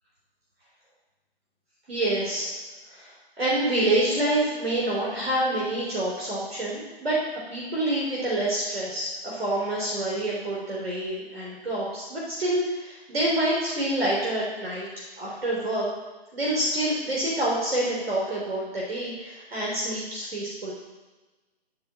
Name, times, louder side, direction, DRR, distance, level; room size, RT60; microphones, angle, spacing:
voice 1, 1.9-2.5 2.9-3.1 3.4-7.2 7.5-15.9 16.3-20.7, right 1 dB, 65° right, -5 dB, 3.4 m, -27 dB
12.0 x 4.9 x 7.5 m, 1.2 s
hypercardioid pair, 165°, 32 cm